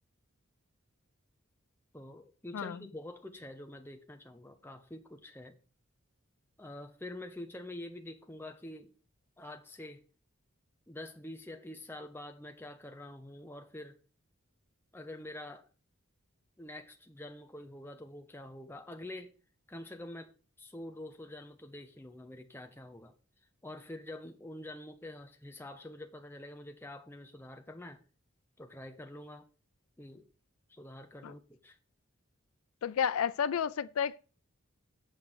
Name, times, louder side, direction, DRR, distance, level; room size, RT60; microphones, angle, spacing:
voice 1, 1.9-5.6 6.6-8.9 9.4-10.0 10.9-14.0 14.9-15.6 16.6-19.3 19.7-20.3 20.6-23.1 23.6-28.0 28.6-29.5 30.0-30.3 30.7-31.8, left 1 dB, 10° left, 0.8 m, -46 dB
voice 2, 32.8-34.2, left 7 dB, 85° left, 0.4 m, -31 dB
8.1 x 5.2 x 6.0 m
head